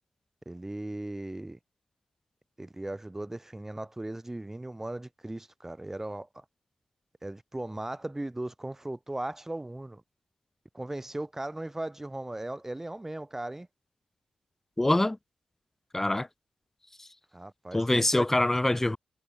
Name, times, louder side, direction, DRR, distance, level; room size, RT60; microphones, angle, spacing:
voice 1, 0.5-1.6 2.6-6.4 7.2-10.0 10.7-13.7 17.3-18.3, right 1 dB, 15° right, 2.8 m, -37 dB
voice 2, 14.8-15.2 15.9-16.3 17.7-19.0, left 1 dB, 15° left, 0.6 m, -24 dB
supercardioid pair, 50°, 2 cm